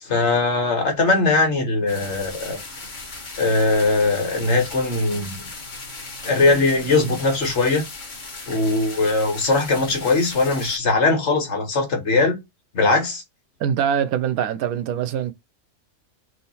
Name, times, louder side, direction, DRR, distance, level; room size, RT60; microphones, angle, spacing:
voice 1, 0.0-2.6 3.4-5.4 6.2-7.8 8.5-12.4 12.7-13.2, left 3 dB, 50° left, 1.4 m, -20 dB
sound 1, 1.9-10.8, left 3 dB, 35° left, 1.1 m, -37 dB
voice 2, 13.6-15.3, right 9 dB, 75° right, 1.0 m, -23 dB
3.8 x 2.8 x 4.0 m
omnidirectional pair, 1.6 m